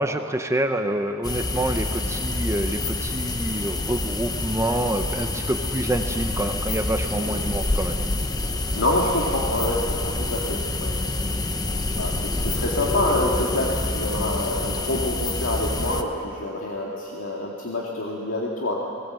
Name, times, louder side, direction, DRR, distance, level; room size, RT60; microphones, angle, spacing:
voice 1, 0.0-8.0, right 1 dB, 15° right, 5 dB, 0.8 m, -27 dB
sound 1, 1.2-16.0, left 2 dB, 20° left, 0.8 m, -27 dB
voice 2, 8.8-11.0 11.9-18.7, left 1 dB, 80° left, -3 dB, 2.1 m, -27 dB
19.5 x 19.0 x 7.7 m, 2.5 s
head